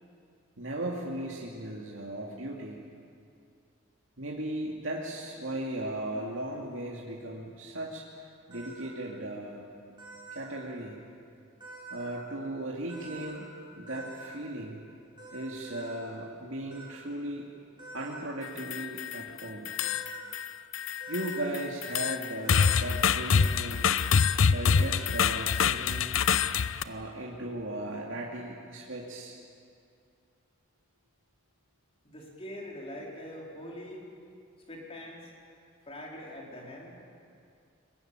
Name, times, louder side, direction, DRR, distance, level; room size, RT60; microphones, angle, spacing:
voice 1, 0.6-2.8 4.2-8.1 8.5-9.6 10.3-11.0 11.9-13.5 13.7-14.8 15.3-17.5 17.9-19.7 21.1-23.9 24.5-26.1 26.8-29.4, right 1 dB, 75° right, -3 dB, 2.4 m, -37 dB
sound 1, 8.5-8.9 10.0-10.5 11.6-12.2 12.9-13.4 13.9-14.3 15.2-16.0 16.7-16.9 17.8-18.3 19.8-20.3 21.0-21.4 22.4-22.9 23.3-23.6 23.8-24.2 24.7-25.2, right 2 dB, 25° right, 7.9 m, -46 dB
sound 2, 18.4-19.2 19.6-20.5 20.7-26.8, left 6 dB, 80° left, 0.6 m, -26 dB
voice 2, 32.0-34.1 34.7-35.3 35.9-37.0, left 1 dB, 30° left, -2 dB, 4.3 m, -43 dB
22.5 x 20.5 x 9.0 m, 2.4 s
head